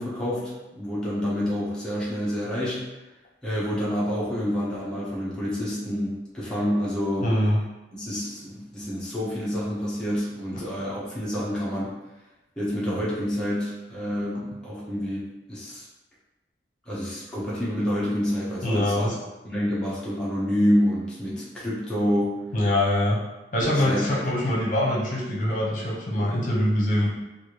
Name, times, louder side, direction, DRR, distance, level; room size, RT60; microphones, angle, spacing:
voice 1, 0.0-2.8 3.4-7.3 8.0-12.0 12.6-15.8 16.8-19.1 19.4-22.4 23.6-24.1, equal, 5° left, -9 dB, 0.7 m, -28 dB
voice 2, 7.2-7.6 18.6-19.1 22.5-23.2 23.5-27.1, left 1 dB, 50° left, -5 dB, 0.8 m, -23 dB
3.2 x 2.5 x 3.0 m, 1.0 s
head